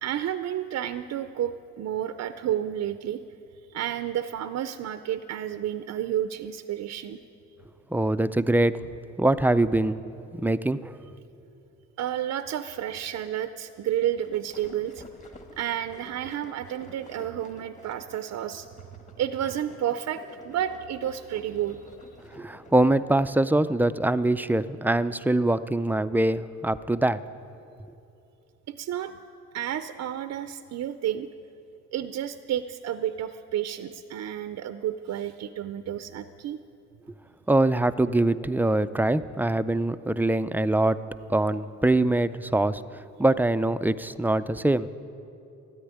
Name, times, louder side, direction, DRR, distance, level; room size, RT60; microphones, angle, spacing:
voice 1, 0.0-3.2 3.7-7.2 12.0-15.0 15.6-18.7 19.2-22.2 28.8-29.2 29.5-31.3 31.9-36.6, right 11 dB, 60° right, 11 dB, 0.6 m, -31 dB
voice 2, 7.9-8.8 9.2-10.0 10.3-11.0 22.4-27.2 37.5-41.0 41.3-42.8 43.2-44.9, right 1 dB, 5° right, 14 dB, 0.4 m, -23 dB
sound 1, 14.0-22.9, left 2 dB, 25° left, 1.9 m, -50 dB
13.5 x 9.6 x 9.9 m, 2.7 s
cardioid pair, 90°, 30 cm